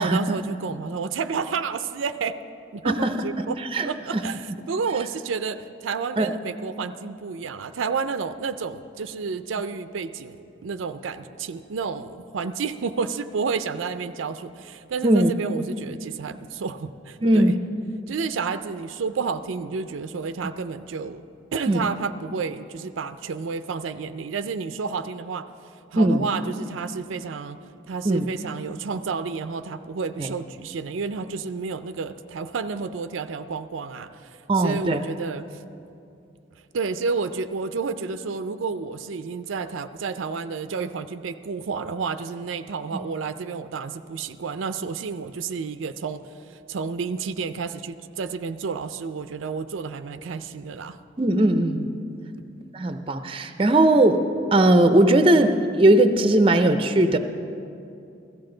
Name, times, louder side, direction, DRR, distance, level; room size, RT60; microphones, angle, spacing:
voice 1, 0.0-2.4 2.7-3.6 3.8-17.5 18.1-21.2 21.5-25.5 25.9-27.6 27.9-35.6 36.7-46.2 46.5-51.0, right 5 dB, 90° right, 11 dB, 0.5 m, -30 dB
voice 2, 2.8-3.2 3.7-4.2 6.2-6.3 15.0-15.3 17.2-17.5 21.7-21.8 25.9-26.3 28.0-28.3 30.2-30.3 34.5-35.0 51.2-51.9 52.7-57.2, right 1 dB, 30° right, 8 dB, 0.5 m, -19 dB
16.0 x 14.0 x 3.8 m, 2.6 s
head